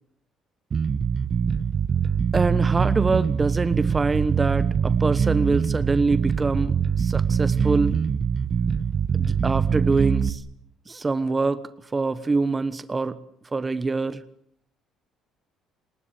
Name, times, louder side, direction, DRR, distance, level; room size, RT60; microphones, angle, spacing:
Bass guitar, 0.7-10.3, right 6 dB, 40° right, 1.3 m, -23 dB
voice 1, 2.3-8.0 9.1-10.4 10.9-11.6 11.9-13.2 13.5-14.2, right 3 dB, 25° right, 14 dB, 1.1 m, -24 dB
30.0 x 19.5 x 8.4 m, 0.70 s
cardioid pair, 100°, 0 cm